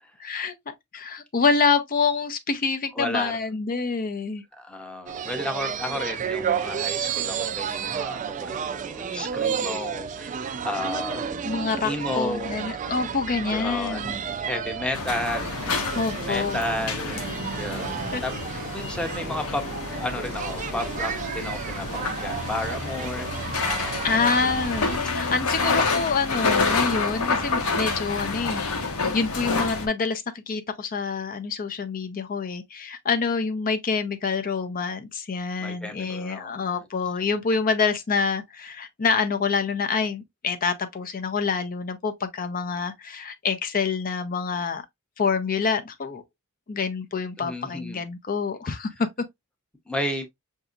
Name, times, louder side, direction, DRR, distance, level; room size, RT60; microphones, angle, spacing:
voice 1, 0.2-4.4 11.4-14.2 15.9-16.7 18.1-18.2 24.0-44.8 45.2-46.2 46.7-49.1, left 5 dB, 40° left, 0.5 m, -27 dB
voice 2, 2.9-3.3 4.5-11.6 11.8-12.5 13.5-15.6 16.3-17.3 17.5-17.9 18.2-18.3 18.7-19.6 19.9-24.0 25.0-25.4 35.6-36.8 47.4-48.0 48.7-48.8 49.9-50.3, left 1 dB, 5° left, 0.7 m, -33 dB
sound 1, 5.1-25.0, right 7 dB, 35° right, 0.3 m, -32 dB
sound 2, 14.9-29.9, left 4 dB, 75° left, 0.8 m, -28 dB
5.8 x 2.7 x 2.4 m
head